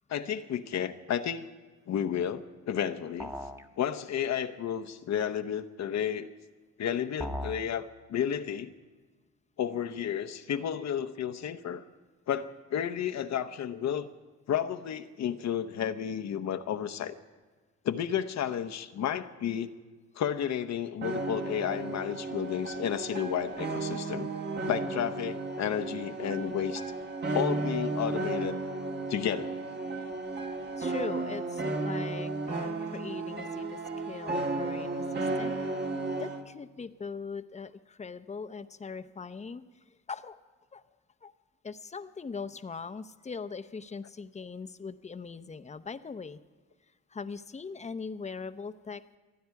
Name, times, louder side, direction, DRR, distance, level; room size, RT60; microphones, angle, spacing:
voice 1, 0.1-1.5 1.9-3.3 3.8-6.3 6.8-8.7 9.6-11.8 12.3-14.1 14.5-17.1 17.8-19.7 20.1-24.3 24.7-26.8 27.3-28.6 29.1-29.5, left 9 dB, 65° left, 9 dB, 0.9 m, -32 dB
sound 1, 3.2-3.7 7.2-7.7, equal, 10° right, 1.2 m, -37 dB
sound 2, 21.0-36.4, right 3 dB, 35° right, 1.5 m, -34 dB
voice 2, 30.8-33.8 34.1-35.6 36.2-39.6 40.1-40.4 40.7-40.8 41.2-41.3 41.6-46.4 47.1-49.2, left 5 dB, 25° left, 12 dB, 0.7 m, -40 dB
28.5 x 9.5 x 4.7 m, 1.4 s
cardioid pair, 90°, 30 cm